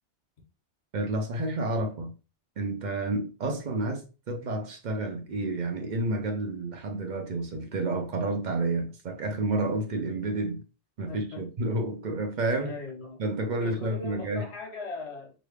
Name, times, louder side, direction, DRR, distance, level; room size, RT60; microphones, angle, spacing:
voice 1, 0.9-2.1 2.6-10.6 11.0-12.8 13.2-14.5, right 2 dB, 50° right, 0.6 m, -30 dB
voice 2, 11.1-11.4 12.6-13.2 13.6-15.3, left 4 dB, 70° left, 1.3 m, -39 dB
3.0 x 2.5 x 3.2 m
omnidirectional pair, 1.2 m